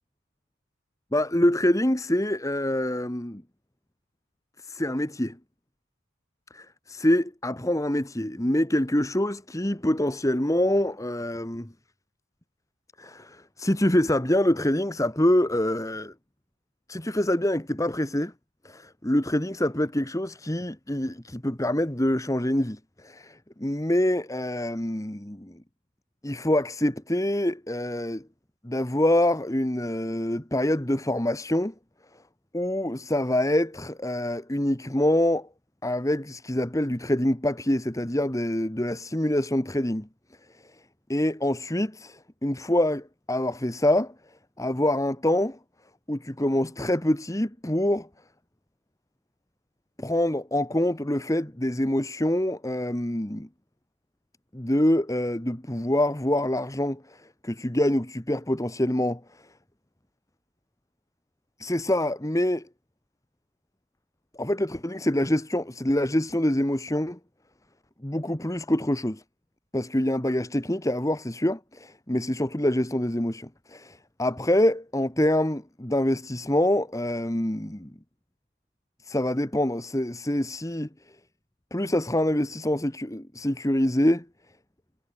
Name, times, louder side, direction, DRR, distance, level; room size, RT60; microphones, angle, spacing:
voice 1, 1.1-3.4 4.6-5.4 6.5-11.7 13.0-16.1 16.9-18.3 18.6-25.6 26.2-28.3 28.6-31.7 32.5-35.5 35.8-40.1 40.6-40.7 41.1-44.1 44.6-45.6 46.1-48.1 50.0-53.5 54.5-59.4 61.6-62.7 64.4-67.2 68.0-69.2 69.7-77.9 79.0-80.9 81.7-84.3, left 1 dB, 15° left, 1.4 m, -25 dB
head